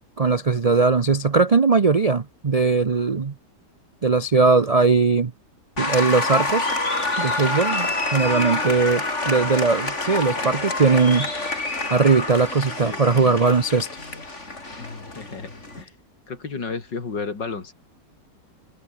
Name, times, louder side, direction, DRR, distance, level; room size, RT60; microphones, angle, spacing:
voice 1, 0.2-3.3 4.0-5.3 5.8-6.7 7.2-11.3 11.9-13.9, right 4 dB, 70° right, 0.3 m, -19 dB
Applause, 5.8-15.8, left 2 dB, 40° left, 4.6 m, -27 dB
voice 2, 12.8-13.4 14.8-15.5 15.8-15.9 16.3-17.7, left 4 dB, 85° left, 3.9 m, -33 dB
omnidirectional pair, 1.9 m